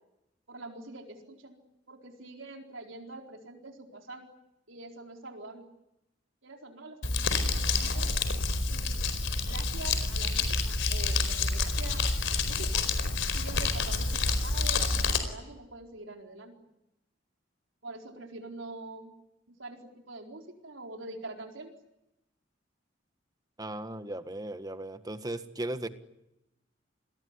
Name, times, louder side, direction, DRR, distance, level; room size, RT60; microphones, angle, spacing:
voice 1, 0.5-1.6 1.9-4.3 4.7-5.7 6.4-8.1 8.6-9.0 9.5-12.8 13.3-16.5 17.8-19.1 19.6-19.8 20.1-21.7, right 2 dB, 85° right, 3 dB, 4.3 m, -45 dB
Crumpling crinkling, 7.0-15.2, left 3 dB, 70° left, 4.6 m, -28 dB
voice 2, 23.6-25.9, right 1 dB, 20° right, 10 dB, 1.6 m, -36 dB
28.5 x 21.5 x 9.8 m, 0.91 s
head